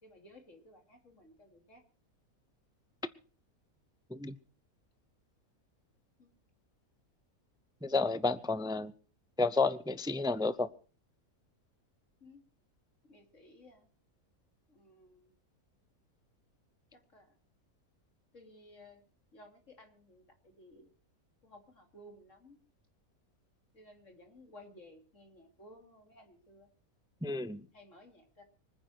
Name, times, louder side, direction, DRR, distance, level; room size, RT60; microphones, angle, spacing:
voice 1, 0.0-1.8 4.2-4.3 6.2-6.3 12.2-12.4 13.0-13.9 14.7-15.3 16.9-17.4 18.3-19.0 19.3-20.9 21.4-22.6 23.7-26.7 27.7-28.4, left 1 dB, 55° left, 3 dB, 3.4 m, -57 dB
voice 2, 7.8-8.9 9.4-10.7 27.2-27.6, left 3 dB, 5° right, 14 dB, 0.3 m, -31 dB
25.0 x 9.8 x 4.5 m, 0.39 s
omnidirectional pair, 1.5 m